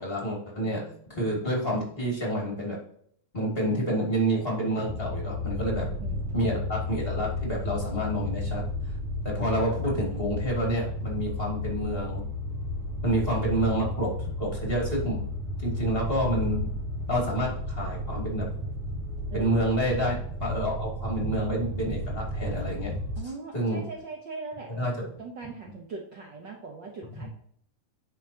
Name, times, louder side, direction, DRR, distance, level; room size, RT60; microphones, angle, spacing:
voice 1, 0.0-0.8 1.1-2.8 3.3-5.9 6.3-8.9 9.2-12.3 13.0-15.3 15.6-16.6 17.1-18.5 19.3-20.1 20.4-22.9 23.5-23.8 24.8-24.9 27.2-27.3, right 1 dB, 20° left, -2 dB, 2.3 m, -28 dB
voice 2, 0.6-1.0 5.7-6.7 19.3-20.0 23.2-27.3, right 4 dB, 80° right, 1 dB, 1.0 m, -41 dB
sound 1, 4.9-23.2, left 1 dB, 50° right, 2.3 m, -33 dB
9.7 x 5.7 x 2.8 m, 0.64 s
omnidirectional pair, 3.5 m